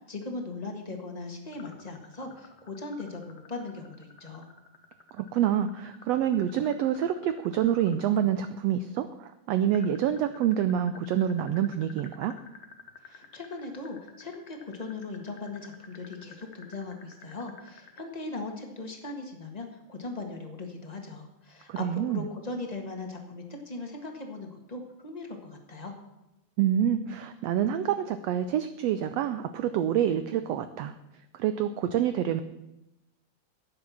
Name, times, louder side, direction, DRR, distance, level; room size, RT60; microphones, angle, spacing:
voice 1, 0.1-4.4 13.0-25.9, left 3 dB, 25° left, 2 dB, 0.8 m, -39 dB
sound 1, 1.5-8.3 9.7-18.0, left 7 dB, 60° left, 2.0 m, -50 dB
voice 2, 5.2-12.3 21.7-22.2 26.6-30.9 31.4-32.4, right 10 dB, 90° right, 11 dB, 1.4 m, -27 dB
11.5 x 8.9 x 7.1 m, 0.93 s
omnidirectional pair, 3.6 m